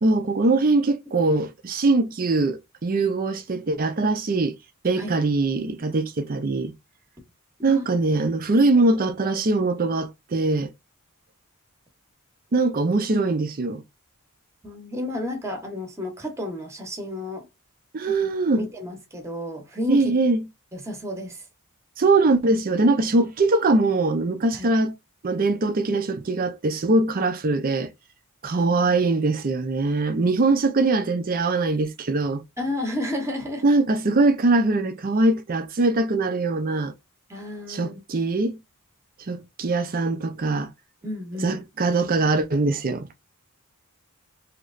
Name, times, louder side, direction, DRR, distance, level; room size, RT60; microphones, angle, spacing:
voice 1, 0.0-4.6 4.8-6.8 7.6-10.7 12.5-13.8 17.9-18.7 19.9-20.4 22.0-24.9 25.2-27.9 28.4-32.4 33.6-36.9 37.7-38.6 39.3-40.7 41.4-43.1, right 3 dB, 40° right, 0.5 m, -22 dB
voice 2, 14.6-17.5 18.0-18.3 18.5-20.1 20.7-21.4 24.5-24.7 28.5-29.0 32.6-33.6 37.3-38.0 41.0-42.0, left 1 dB, 15° right, 0.9 m, -32 dB
3.1 x 2.9 x 2.5 m
head